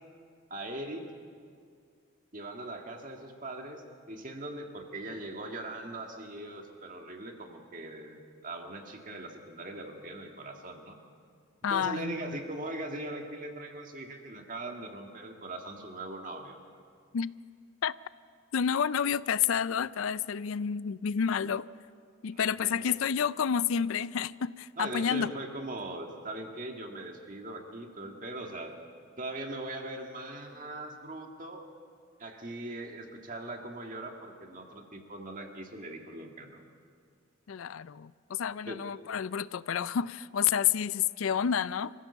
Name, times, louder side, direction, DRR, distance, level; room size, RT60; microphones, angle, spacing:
voice 1, 0.5-1.1 2.3-11.0 11.7-16.6 22.3-22.9 24.8-28.7 29.2-31.6 32.2-36.6 38.7-38.8, right 2 dB, 40° right, 3 dB, 2.0 m, -40 dB
voice 2, 11.6-12.4 17.1-17.3 17.8-17.9 18.5-21.7 22.2-25.3 37.5-41.9, left 7 dB, 80° left, 18 dB, 0.4 m, -29 dB
26.5 x 15.0 x 7.1 m, 2.2 s
head